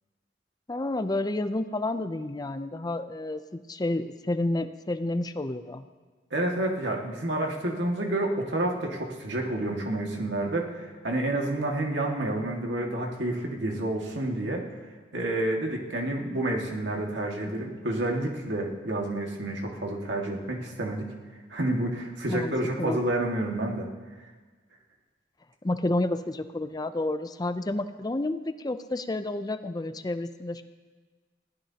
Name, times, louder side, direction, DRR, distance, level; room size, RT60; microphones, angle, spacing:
voice 1, 0.7-5.8 22.3-22.5 22.8-23.0 25.6-30.6, left 2 dB, 20° left, 10 dB, 0.5 m, -30 dB
voice 2, 6.3-14.6 15.1-21.1 21.5-23.9, right 1 dB, 80° right, 0 dB, 2.0 m, -29 dB
21.0 x 16.0 x 2.9 m, 1.4 s
head